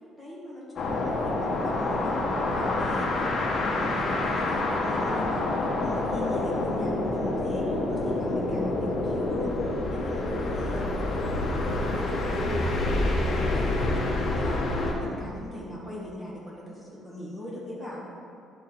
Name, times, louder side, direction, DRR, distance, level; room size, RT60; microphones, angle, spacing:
voice 1, 0.2-9.6 9.9-18.1, left 1 dB, 10° right, -6 dB, 1.7 m, -39 dB
sound 1, 0.8-14.9, left 2 dB, 40° left, 1.1 m, -27 dB
10.5 x 4.7 x 4.5 m, 2.4 s
cardioid pair, 165°, 0 cm